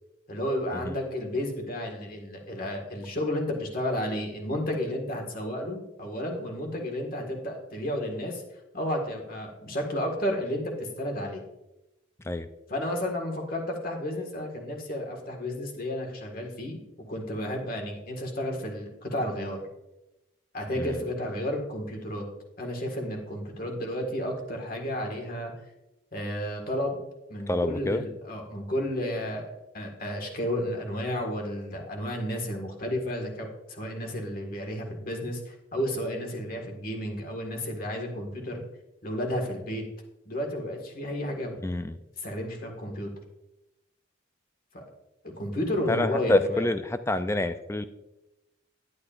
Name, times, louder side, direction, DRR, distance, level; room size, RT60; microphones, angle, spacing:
voice 1, 0.3-8.4 8.7-11.4 12.7-16.8 17.1-19.6 20.5-22.2 22.6-25.5 26.1-27.0 27.3-38.6 39.0-39.8 40.3-41.6 42.2-43.1 44.7-44.8 45.2-46.6, left 1 dB, 45° left, 1 dB, 1.8 m, -32 dB
voice 2, 27.5-28.0 41.6-42.0 45.9-47.9, left 2 dB, 15° left, 11 dB, 0.4 m, -27 dB
11.0 x 9.6 x 2.5 m, 0.95 s
head